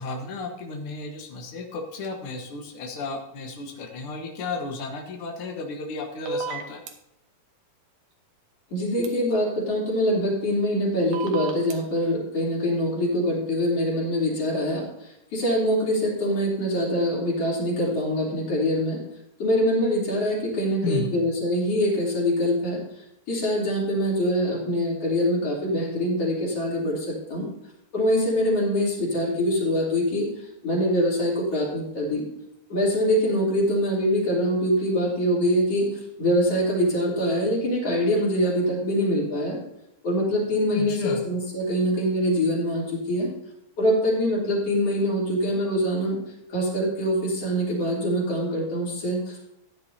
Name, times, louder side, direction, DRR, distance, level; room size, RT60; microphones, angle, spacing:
voice 1, 0.0-6.8 20.8-21.1 40.7-41.3, left 3 dB, 80° left, 2 dB, 1.2 m, -33 dB
sound 1, 6.3-6.9 9.0-9.1 11.1-11.7, right 5 dB, 65° right, 2.3 m, -31 dB
voice 2, 8.7-14.9 15.3-19.0 19.4-22.8 23.3-27.5 27.9-30.3 30.6-32.3 32.7-35.9 36.2-39.6 40.0-43.3 43.8-46.2 46.5-49.5, equal, 40° left, -4 dB, 4.0 m, -24 dB
15.0 x 10.0 x 2.8 m, 0.80 s
omnidirectional pair, 4.6 m